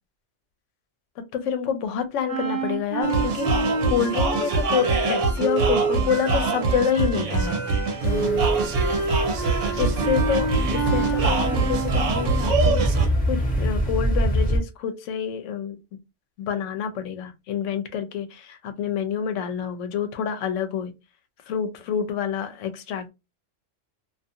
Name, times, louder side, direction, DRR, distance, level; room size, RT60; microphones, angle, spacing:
voice 1, 1.2-7.6 8.0-8.5 9.8-15.8 16.4-20.9 21.5-23.1, left 8 dB, 80° left, 0.9 m, -28 dB
sound 1, 2.3-11.9, right 4 dB, 50° right, 1.2 m, -28 dB
sound 2, 3.0-13.1, right 4 dB, 80° right, 0.9 m, -25 dB
sound 3, 8.0-14.6, equal, 5° left, 1.0 m, -26 dB
2.4 x 2.4 x 2.6 m
omnidirectional pair, 1.3 m